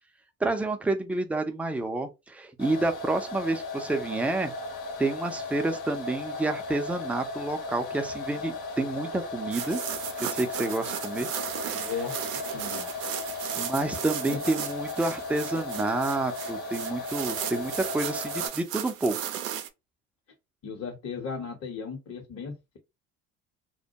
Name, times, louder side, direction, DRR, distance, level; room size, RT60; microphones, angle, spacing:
voice 1, 0.4-4.5 5.0-9.8 10.2-11.3 11.7-11.9 13.5-19.3, right 2 dB, 5° right, 0.5 m, -29 dB
sound 1, 2.6-18.5, left 3 dB, 75° left, 0.9 m, -36 dB
sound 2, 9.5-19.7, right 10 dB, 85° right, 0.5 m, -36 dB
voice 2, 11.7-12.9 14.3-14.4 20.6-22.8, left 5 dB, 40° left, 1.0 m, -36 dB
2.2 x 2.1 x 2.8 m
hypercardioid pair, 65°, 38 cm